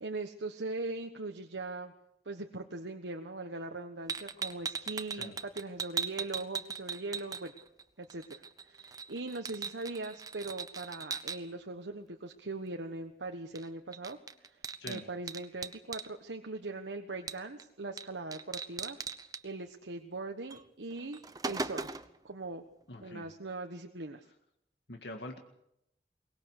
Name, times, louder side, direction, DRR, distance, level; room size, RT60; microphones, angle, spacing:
voice 1, 0.0-1.9 2.2-7.5 8.0-19.0 19.4-22.0 22.2-22.6 23.0-24.2, right 2 dB, 90° right, 4 dB, 1.3 m, -40 dB
sound 1, 4.1-7.8 8.1-11.4 13.5-13.7 13.9-16.1 17.3-17.6 18.0-18.1 18.3-19.4 20.5-20.6 21.0-22.2, right 5 dB, 20° right, 0.8 m, -39 dB
voice 2, 22.9-23.3 24.9-25.4, left 1 dB, 75° left, 3 dB, 2.1 m, -44 dB
23.0 x 20.0 x 6.6 m, 0.78 s
head